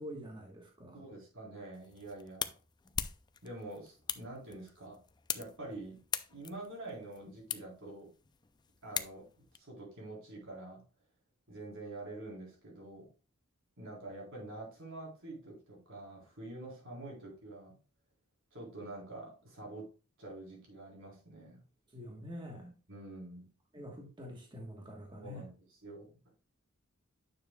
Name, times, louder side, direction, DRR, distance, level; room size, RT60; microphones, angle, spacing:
voice 1, 0.0-1.0 21.9-22.7 23.7-25.4, equal, 20° right, 0 dB, 1.3 m, -46 dB
voice 2, 0.9-2.6 3.4-5.0 5.3-6.0 6.3-8.1 8.8-9.3 9.5-10.8 11.5-13.1 13.8-17.8 18.5-19.9 20.2-21.6 22.9-23.5 25.2-25.5 25.8-26.1, right 2 dB, 65° right, -2 dB, 3.9 m, -46 dB
sound 1, 1.7-9.6, left 7 dB, 20° left, 0.4 m, -42 dB
9.7 x 6.6 x 2.3 m, 0.34 s
head